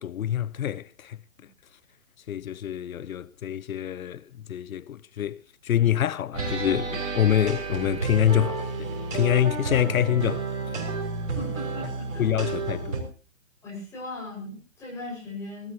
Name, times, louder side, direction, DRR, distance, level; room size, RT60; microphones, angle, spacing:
voice 1, 0.0-1.2 2.3-10.5 12.2-13.0, left 10 dB, 85° left, 0.7 m, -26 dB
sound 1, 6.3-13.0, right 4 dB, 65° right, 6.7 m, -31 dB
voice 2, 11.3-12.6 13.6-15.7, left 2 dB, 5° left, 6.0 m, -39 dB
19.5 x 17.0 x 3.0 m
hypercardioid pair, 170°, 40 cm